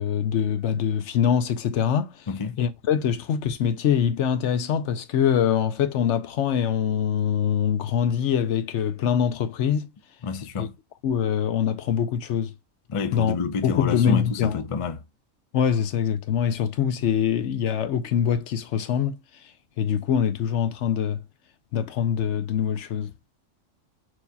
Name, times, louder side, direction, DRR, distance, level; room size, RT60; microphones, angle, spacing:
voice 1, 0.0-2.3 2.6-9.9 10.6-10.7 11.0-12.5 13.1-13.4 13.6-14.6 15.5-19.5 19.8-21.2 21.7-23.1, left 8 dB, 70° left, 0.9 m, -24 dB
voice 2, 2.3-2.6 10.2-10.7 12.9-15.0, left 5 dB, 45° left, 0.4 m, -28 dB
6.2 x 2.8 x 2.3 m
omnidirectional pair, 1.4 m